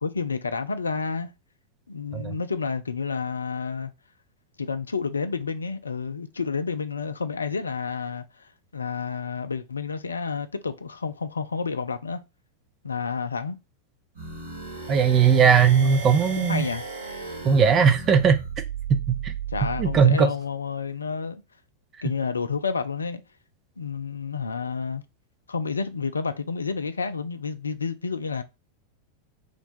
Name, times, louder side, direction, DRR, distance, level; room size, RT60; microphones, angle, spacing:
voice 1, 0.0-1.3 1.9-3.9 4.6-12.2 12.8-13.6 16.4-16.8 19.5-21.4 22.0-23.2 23.8-25.0 25.5-28.4, left 5 dB, 75° left, 0.3 m, -30 dB
sound 1, 14.2-20.1, right 5 dB, 65° right, 1.3 m, -35 dB
voice 2, 14.9-16.7 17.4-18.4 18.9-19.3 19.8-20.3, right 6 dB, 30° right, 0.5 m, -19 dB
2.6 x 2.2 x 4.0 m
figure-of-eight pair, 90°, 0 cm